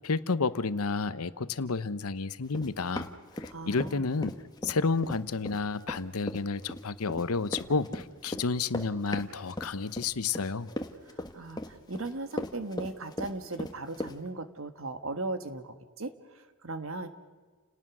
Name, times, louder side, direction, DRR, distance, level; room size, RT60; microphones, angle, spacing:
voice 1, 0.0-3.1 3.4-4.3 4.6-10.7, left 4 dB, 85° left, 14 dB, 0.9 m, -31 dB
Run, 2.5-3.9 4.2-14.2, left 1 dB, 20° left, 1.4 m, -37 dB
voice 2, 3.5-4.1 11.1-17.1, right 2 dB, 70° right, 9 dB, 1.5 m, -38 dB
29.5 x 18.5 x 6.2 m, 1.4 s
head